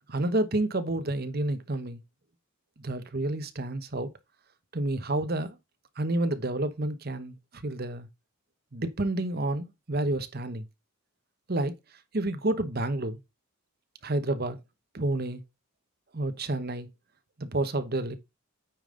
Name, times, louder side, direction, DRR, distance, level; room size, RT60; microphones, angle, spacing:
voice 1, 0.1-2.0 2.8-4.1 4.7-5.6 6.0-8.1 8.7-10.6 11.5-11.7 12.1-13.2 14.0-14.6 14.9-15.4 16.1-16.9 17.4-18.2, right 2 dB, 45° right, 1.0 m, -29 dB
9.0 x 5.2 x 3.8 m
head